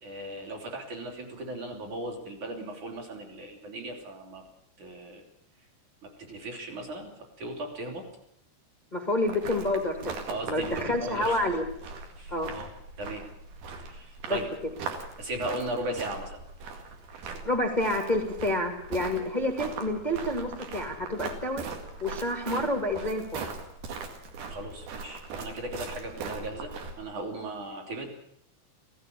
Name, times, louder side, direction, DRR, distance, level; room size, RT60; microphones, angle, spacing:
voice 1, 0.0-4.4 4.8-5.2 6.0-7.1 7.4-8.0 10.3-11.4 12.2-12.7 13.0-13.2 13.8-14.5 15.2-16.4 24.5-28.1, right 1 dB, 45° right, 1 dB, 4.5 m, -37 dB
voice 2, 8.9-10.2 10.5-11.6 12.3-12.5 14.3-14.4 17.4-21.7 22.0-23.4, left 1 dB, 45° left, 2 dB, 0.5 m, -28 dB
sound 1, 9.3-27.0, right 4 dB, 60° right, 3.9 m, -40 dB
16.5 x 16.0 x 10.0 m, 0.73 s
omnidirectional pair, 5.1 m